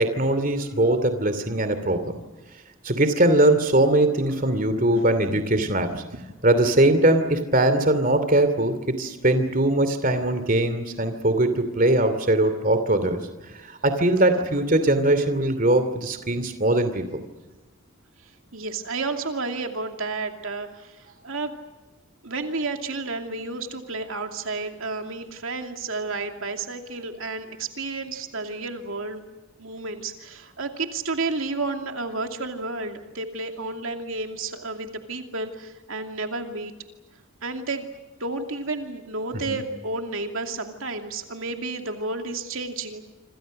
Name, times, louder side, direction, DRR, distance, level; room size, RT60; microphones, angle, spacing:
voice 1, 0.0-2.1 2.8-5.9 6.4-13.2 13.6-17.2 39.5-39.7, right 1 dB, 40° right, 10 dB, 2.6 m, -21 dB
voice 2, 18.5-21.5 22.2-29.2 29.6-36.7 37.4-37.9 38.2-43.0, right 3 dB, 70° right, 5 dB, 2.6 m, -31 dB
27.5 x 26.5 x 6.5 m, 1.1 s
head